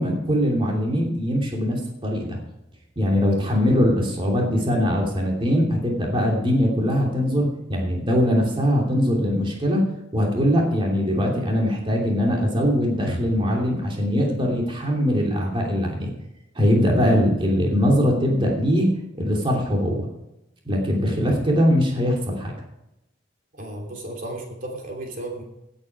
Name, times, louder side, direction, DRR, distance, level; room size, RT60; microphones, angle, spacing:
voice 1, 0.0-2.4 3.0-9.8 10.1-16.1 16.5-18.9 19.1-20.1 20.6-22.5, equal, 25° right, -1 dB, 2.9 m, -21 dB
voice 2, 23.6-25.4, right 1 dB, 45° right, 1 dB, 3.0 m, -34 dB
17.5 x 8.9 x 4.7 m, 0.89 s
head